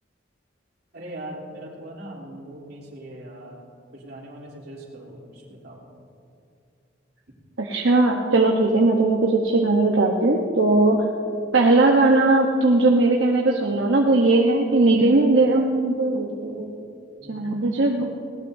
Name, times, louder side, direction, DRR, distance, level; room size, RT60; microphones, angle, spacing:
voice 1, 0.9-3.7 3.9-5.9 17.2-17.6, right 1 dB, 60° right, -3 dB, 3.2 m, -40 dB
voice 2, 7.6-11.0 11.5-16.7 17.3-18.1, right 2 dB, 80° right, -1 dB, 1.0 m, -19 dB
20.0 x 18.0 x 2.7 m, 2.5 s
head